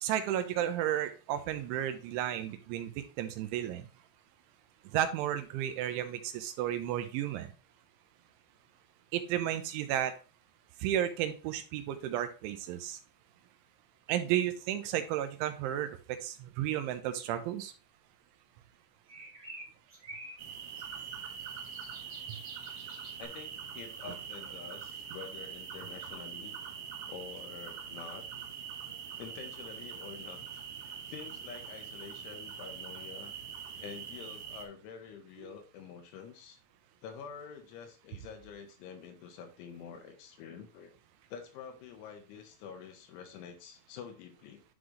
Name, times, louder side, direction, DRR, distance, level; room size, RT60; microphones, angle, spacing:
voice 1, 0.0-3.9 4.9-7.5 9.1-10.1 10.8-13.0 14.1-17.7 22.3-22.4, right 11 dB, 90° right, 9 dB, 3.2 m, -33 dB
sound 1, 19.1-23.3, right 2 dB, 50° right, 1.0 m, -49 dB
sound 2, 20.4-34.7, right 7 dB, 70° right, 3.3 m, -43 dB
voice 2, 23.2-26.6 27.1-28.4 29.2-33.3 33.8-36.6 37.0-40.9 41.3-44.6, left 7 dB, 90° left, 5 dB, 3.6 m, -47 dB
11.0 x 3.9 x 3.2 m, 0.33 s
omnidirectional pair, 5.4 m